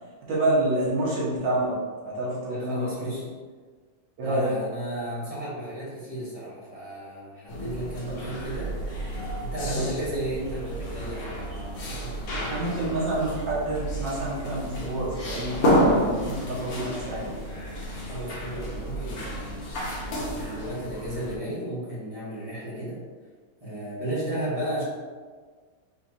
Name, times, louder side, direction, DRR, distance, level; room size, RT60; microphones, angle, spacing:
voice 1, 0.3-1.8 2.1-3.1 4.2-4.5 9.7-9.9 12.5-17.3, right 1 dB, 75° right, -7 dB, 1.9 m, -28 dB
voice 2, 2.5-3.3 4.2-8.7 9.4-12.9 18.1-19.7 20.0-23.0 23.6-24.8, right 1 dB, 20° right, -8 dB, 1.2 m, -34 dB
sound 1, 7.5-21.3, equal, 55° left, 1.2 m, -30 dB
4.6 x 3.6 x 2.7 m, 1.5 s
omnidirectional pair, 2.0 m